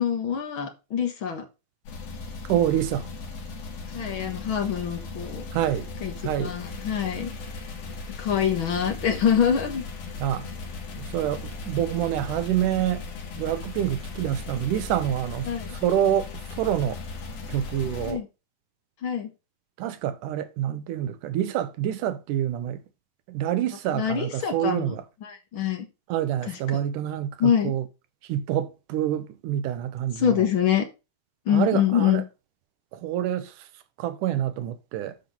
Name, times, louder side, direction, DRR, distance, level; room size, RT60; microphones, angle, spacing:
voice 1, 0.0-1.4 3.9-5.4 6.0-6.1 6.4-7.3 8.2-9.8 15.4-15.8 18.0-18.3 19.0-19.3 23.9-24.8 25.2-25.9 26.5-26.6 27.4-27.7 30.2-30.8 31.4-32.2, left 8 dB, 50° left, 1.6 m, -25 dB
sound 1, 1.9-18.1, left 3 dB, 85° left, 4.2 m, -37 dB
voice 2, 2.5-3.1 5.5-5.9 6.2-6.5 10.2-10.5 11.0-13.1 13.4-17.0 17.5-18.2 19.8-22.8 23.3-25.0 26.1-27.9 28.2-30.5 31.5-32.2 32.9-33.7 34.0-35.1, right 11 dB, 75° right, 2.2 m, -27 dB
12.0 x 4.4 x 5.2 m
omnidirectional pair, 4.0 m